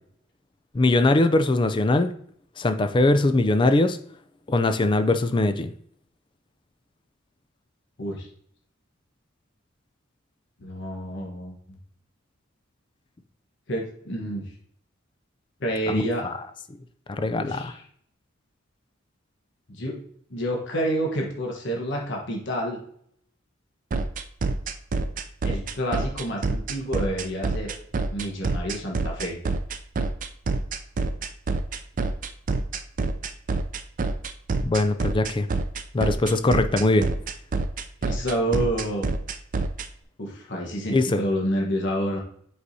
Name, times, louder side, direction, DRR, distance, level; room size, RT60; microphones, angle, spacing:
voice 1, 0.7-2.1 2.6-4.0 4.5-5.7 15.9-16.3 17.1-17.7 34.6-35.5 35.9-37.1 40.9-41.2, left 2 dB, 25° left, 0.4 m, -21 dB
voice 2, 10.6-11.8 13.7-14.5 15.6-16.3 17.3-17.8 19.7-20.0 20.3-22.8 25.4-27.7 28.1-29.4 38.0-39.1 40.2-42.2, equal, 60° left, 1.2 m, -29 dB
sound 1, 23.9-39.9, right 3 dB, 40° right, 0.4 m, -26 dB
7.9 x 4.7 x 2.7 m
head